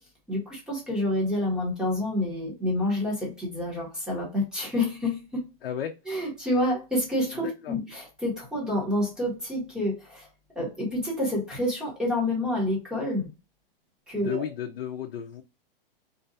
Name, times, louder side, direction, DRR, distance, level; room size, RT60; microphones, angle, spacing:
voice 1, 0.3-5.4 6.1-10.3 10.6-13.3 14.1-14.4, left 1 dB, ahead, -3 dB, 0.8 m, -28 dB
voice 2, 5.6-6.0 7.3-7.8 14.1-15.4, left 9 dB, 80° left, 5 dB, 0.5 m, -34 dB
2.6 x 2.2 x 2.5 m, 0.28 s
hypercardioid pair, 155°, 29 cm